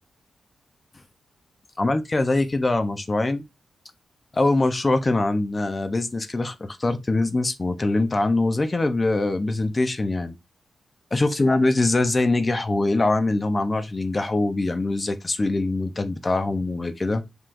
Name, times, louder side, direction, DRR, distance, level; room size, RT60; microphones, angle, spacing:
voice 1, 1.8-3.4 4.3-10.4 11.1-17.2, left 2 dB, 30° left, 0.5 m, -23 dB
5.6 x 3.1 x 2.5 m
cardioid pair, 90°, 0 cm